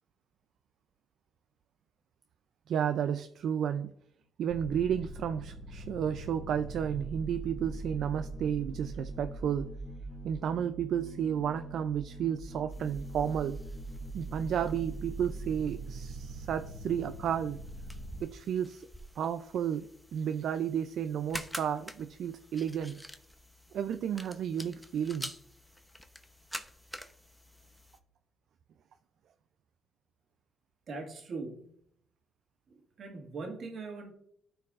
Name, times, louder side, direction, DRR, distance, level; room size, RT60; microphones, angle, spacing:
voice 1, 2.7-3.9 4.4-9.7 10.2-13.6 14.1-17.6 18.2-18.9 19.2-23.0 23.7-25.3, right 8 dB, 70° right, 10 dB, 0.4 m, -32 dB
sound 1, 4.5-18.2, right 2 dB, 25° left, 2.7 m, -42 dB
sound 2, 12.7-28.0, left 1 dB, 5° left, 0.8 m, -48 dB
voice 2, 30.9-31.8 32.7-34.1, right 3 dB, 55° right, 2 dB, 1.9 m, -41 dB
13.5 x 4.5 x 2.5 m, 0.70 s
cardioid pair, 90°, 0 cm